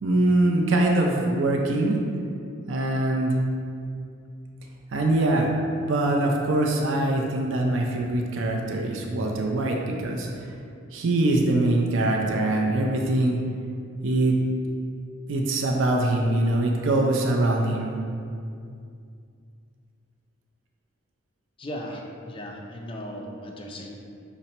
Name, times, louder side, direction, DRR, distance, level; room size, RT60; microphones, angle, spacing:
voice 1, 0.0-2.0 2.7-3.4 4.9-5.5 5.8-10.3 10.9-13.4 14.0-14.3 15.3-17.9, right 2 dB, 65° right, 0 dB, 0.4 m, -23 dB
voice 2, 21.6-24.0, equal, 25° left, 1 dB, 0.3 m, -37 dB
5.3 x 2.0 x 4.2 m, 2.4 s
head